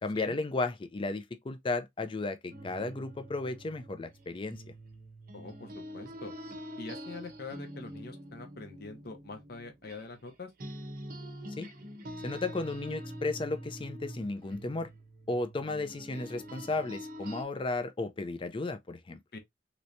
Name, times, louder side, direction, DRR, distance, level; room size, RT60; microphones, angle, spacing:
voice 1, 0.0-4.6 11.6-11.7 12.2-14.9 15.3-19.2, left 3 dB, 25° left, 0.4 m, -34 dB
sound 1, 2.5-10.3 10.6-17.4, equal, 50° right, 0.8 m, -45 dB
voice 2, 5.3-6.3 6.8-10.5 19.3-19.4, left 3 dB, 55° left, 0.8 m, -44 dB
3.2 x 3.0 x 2.6 m
head